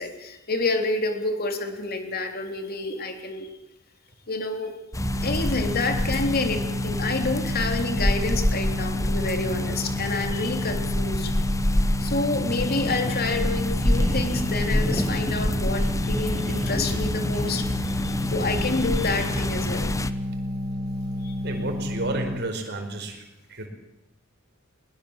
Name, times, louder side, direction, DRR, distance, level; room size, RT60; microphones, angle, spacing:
voice 1, 0.0-3.5 4.3-4.8 5.2-11.3 12.0-19.9 21.2-21.3, left 3 dB, 45° left, 5 dB, 3.5 m, -28 dB
sound 1, 4.9-20.1, left 1 dB, 15° left, 1.0 m, -27 dB
sound 2, 5.0-22.4, left 1 dB, 25° right, 3.6 m, -30 dB
sound 3, 12.6-13.1 13.8-15.9 16.2-17.7, right 2 dB, 70° right, 1.7 m, -40 dB
voice 2, 21.4-23.2 23.5-23.7, right 2 dB, 55° right, 4 dB, 4.9 m, -31 dB
21.0 x 21.0 x 7.4 m, 0.89 s
head